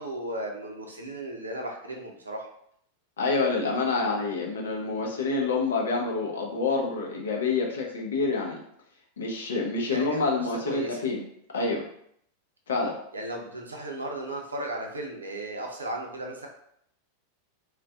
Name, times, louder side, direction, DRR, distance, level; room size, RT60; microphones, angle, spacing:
voice 1, 0.0-2.5 9.9-11.0 13.1-16.5, right 1 dB, 75° right, 1 dB, 0.6 m, -35 dB
voice 2, 3.2-8.6 9.2-11.2 11.5-11.8 12.7-13.0, left 3 dB, 65° left, 0 dB, 0.6 m, -27 dB
2.5 x 2.2 x 3.6 m, 0.70 s
figure-of-eight pair, 90°, 0 cm